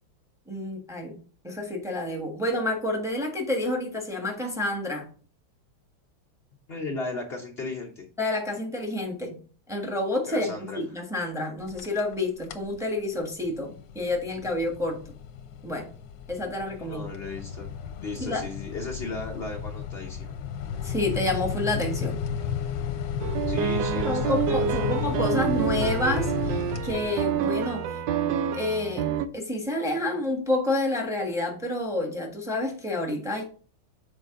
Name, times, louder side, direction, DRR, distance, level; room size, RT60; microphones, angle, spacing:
voice 1, 0.5-1.2 1.4-5.1 8.2-9.4 9.7-15.0 15.6-15.9 16.3-17.1 18.2-18.4 20.8-22.2 24.0-28.0 28.5-29.1 29.3-33.4, left 2 dB, ahead, 2 dB, 0.9 m, -29 dB
voice 2, 6.7-8.1 10.3-10.8 16.8-17.7 18.0-20.3 23.5-24.9, left 3 dB, 85° left, 1 dB, 0.5 m, -36 dB
sound 1, 11.6-12.2 12.4-12.8 13.2-27.5, left 8 dB, 70° left, 1.2 m, -33 dB
sound 2, 23.2-29.3, right 9 dB, 75° right, 1.1 m, -28 dB
6.7 x 4.5 x 3.7 m, 0.40 s
omnidirectional pair, 2.3 m